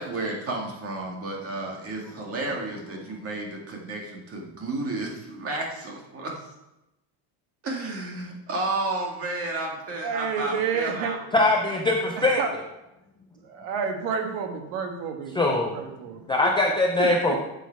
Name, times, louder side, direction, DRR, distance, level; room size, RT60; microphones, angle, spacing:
voice 1, 0.0-6.3 7.6-11.2, right 2 dB, 30° right, 0 dB, 2.0 m, -32 dB
voice 2, 10.0-11.2 12.2-12.5 13.4-16.2 17.0-17.1, right 6 dB, 75° right, 5 dB, 1.6 m, -30 dB
voice 3, 11.3-12.4 15.3-15.8 16.3-17.4, left 2 dB, 10° left, 0 dB, 0.3 m, -22 dB
8.2 x 8.2 x 4.5 m, 0.92 s
cardioid pair, 160°, 49 cm